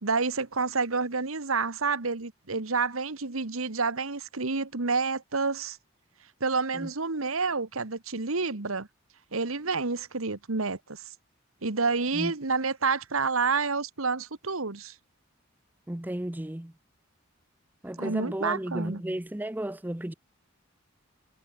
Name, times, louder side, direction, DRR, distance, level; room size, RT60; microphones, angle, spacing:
voice 1, 0.0-5.8 6.4-8.9 9.3-11.0 11.6-14.9 18.0-19.0, right 4 dB, 85° right, 1.6 m, -29 dB
voice 2, 15.9-16.7 17.8-20.1, right 1 dB, 10° right, 0.6 m, -33 dB
head